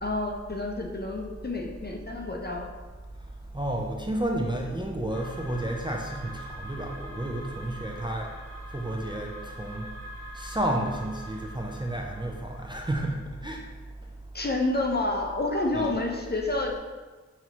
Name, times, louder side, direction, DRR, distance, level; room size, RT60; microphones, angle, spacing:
voice 1, 0.0-2.7 14.3-16.8, left 2 dB, 35° left, 0 dB, 0.6 m, -29 dB
voice 2, 3.5-8.3 8.7-9.9 10.3-13.6 15.7-16.0, right 1 dB, 15° right, 0 dB, 0.4 m, -31 dB
sound 1, 5.1-12.8, equal, 5° left, 1.3 m, -45 dB
5.8 x 2.9 x 2.8 m, 1.3 s
wide cardioid pair, 45°, 29 cm